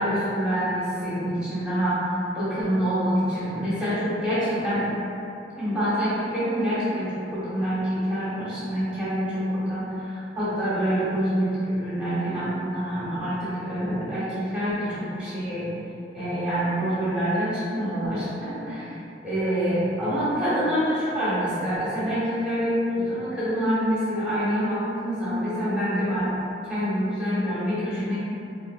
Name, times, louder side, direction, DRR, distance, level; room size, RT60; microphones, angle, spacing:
voice 1, 0.0-2.1 2.3-4.9 5.6-15.7 16.1-18.9 19.2-26.3 26.7-28.2, equal, 5° right, -12 dB, 1.2 m, -26 dB
4.0 x 2.7 x 2.4 m, 2.7 s
head